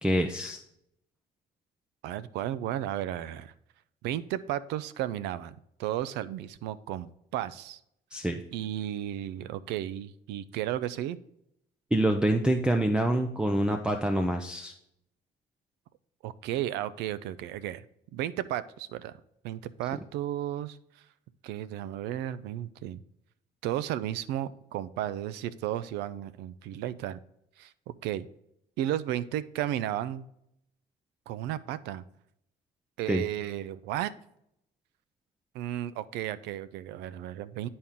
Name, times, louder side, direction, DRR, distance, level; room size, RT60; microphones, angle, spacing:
voice 1, 0.0-0.6 8.1-8.4 11.9-14.7 33.1-33.2, right 1 dB, 5° right, 5 dB, 0.5 m, -26 dB
voice 2, 2.0-3.5 4.0-7.8 8.5-11.2 16.2-17.8 18.1-19.2 19.4-21.0 21.4-23.0 23.6-27.2 27.6-28.3 28.8-30.3 31.3-32.0 33.0-34.1 35.5-37.7, right 12 dB, 90° right, 16 dB, 0.4 m, -34 dB
10.5 x 4.3 x 3.6 m, 0.77 s
cardioid pair, 110°, 17 cm